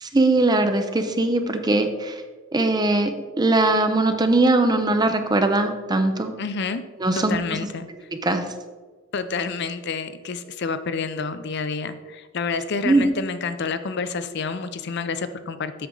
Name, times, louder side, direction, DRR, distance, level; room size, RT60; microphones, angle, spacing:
voice 1, 0.0-2.1 2.5-3.1 3.4-6.3 7.0-7.4 8.2-8.4 12.8-13.0, right 2 dB, 20° right, 7 dB, 0.6 m, -20 dB
voice 2, 6.4-6.8 7.2-7.9 9.1-15.7, left 4 dB, 60° left, 11 dB, 0.5 m, -28 dB
7.8 x 6.5 x 3.8 m, 1.4 s
head